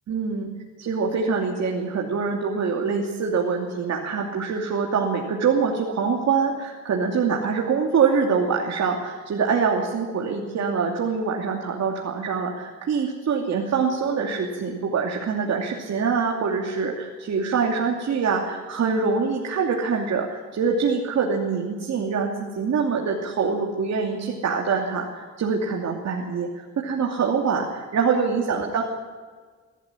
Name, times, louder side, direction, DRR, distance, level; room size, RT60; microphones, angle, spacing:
voice 1, 0.1-0.5 0.8-28.8, right 5 dB, 60° right, -1 dB, 2.9 m, -24 dB
21.5 x 13.5 x 9.9 m, 1.5 s
cardioid pair, 90°, 30 cm